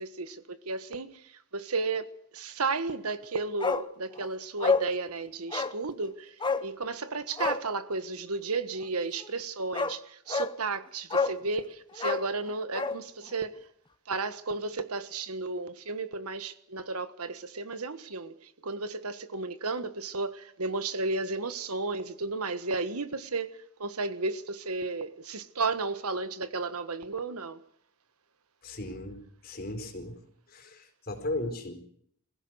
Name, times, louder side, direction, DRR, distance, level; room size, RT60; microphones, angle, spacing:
voice 1, 0.0-6.3 6.6-13.6 14.1-27.6, right 3 dB, 90° right, 1.5 m, -33 dB
Bark, 3.6-3.9 4.2-4.3 4.6-4.9 5.5-5.8 6.4-6.7 7.3-7.6 9.2-9.3 9.7-10.0 10.3-10.5 11.1-11.4 11.9-13.0 13.3-13.4, left 4 dB, 20° left, 0.8 m, -28 dB
voice 2, 28.6-30.2 30.5-31.7, left 1 dB, 45° left, 4.3 m, -36 dB
23.0 x 15.5 x 7.9 m
head